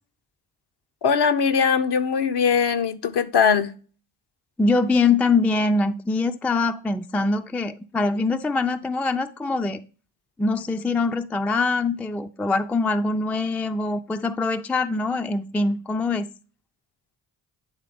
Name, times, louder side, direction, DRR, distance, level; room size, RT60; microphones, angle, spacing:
voice 1, 1.0-3.7, left 6 dB, 55° left, 0.8 m, -21 dB
voice 2, 4.6-9.8 10.4-16.3, left 3 dB, 5° left, 0.4 m, -23 dB
9.4 x 3.4 x 3.4 m
supercardioid pair, 40°, 49 cm